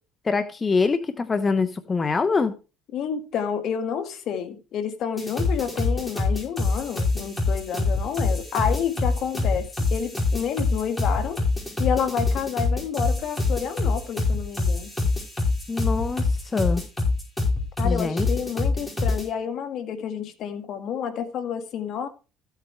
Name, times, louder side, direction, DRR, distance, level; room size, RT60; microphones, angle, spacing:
voice 1, 0.2-2.5 15.7-16.8 17.8-18.3, left 4 dB, 25° left, 0.9 m, -24 dB
voice 2, 2.9-11.4 11.8-14.9 17.8-22.1, left 7 dB, 60° left, 1.8 m, -29 dB
sound 1, 5.2-19.2, left 3 dB, 10° left, 5.1 m, -25 dB
14.0 x 8.3 x 3.2 m
supercardioid pair, 95°, 0 cm